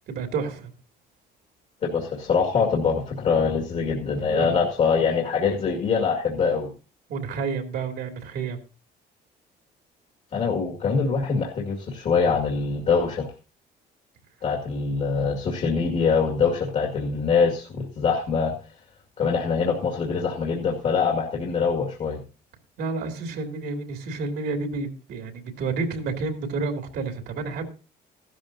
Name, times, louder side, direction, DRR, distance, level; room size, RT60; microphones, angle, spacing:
voice 1, 0.1-0.7 4.3-4.5 7.1-8.6 22.8-27.7, right 4 dB, 70° right, 4 dB, 2.7 m, -30 dB
voice 2, 1.8-6.7 10.3-13.3 14.4-18.5 19.2-22.2, left 5 dB, 45° left, 1 dB, 2.1 m, -24 dB
15.5 x 12.5 x 2.7 m, 0.33 s
cardioid pair, 145°, 17 cm